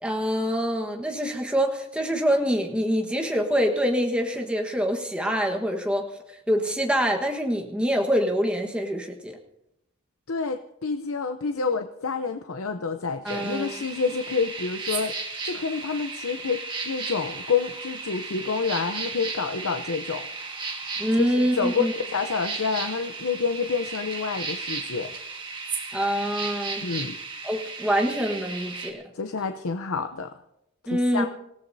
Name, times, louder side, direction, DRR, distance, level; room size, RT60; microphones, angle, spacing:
voice 1, 0.0-6.1 6.5-9.4 13.2-13.8 21.0-21.9 25.9-26.9 27.4-29.0 30.9-31.3, equal, 5° right, 1 dB, 1.4 m, -25 dB
voice 2, 10.3-15.1 15.4-20.3 21.4-25.1 26.8-27.2 29.1-30.3 30.8-31.3, left 5 dB, 80° left, 7 dB, 0.7 m, -28 dB
sound 1, 13.3-28.9, right 4 dB, 20° right, 1.7 m, -35 dB
26.5 x 16.5 x 2.8 m, 0.84 s
head